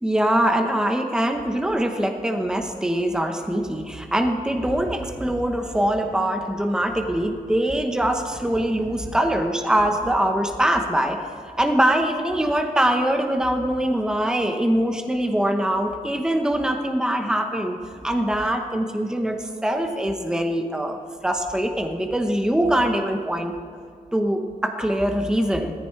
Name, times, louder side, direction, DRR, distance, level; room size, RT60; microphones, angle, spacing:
voice 1, 0.0-11.2 11.6-17.8 18.0-23.5 24.1-25.7, right 1 dB, 5° right, 4 dB, 1.0 m, -23 dB
17.5 x 14.5 x 3.3 m, 2.3 s
wide cardioid pair, 115°, 15 cm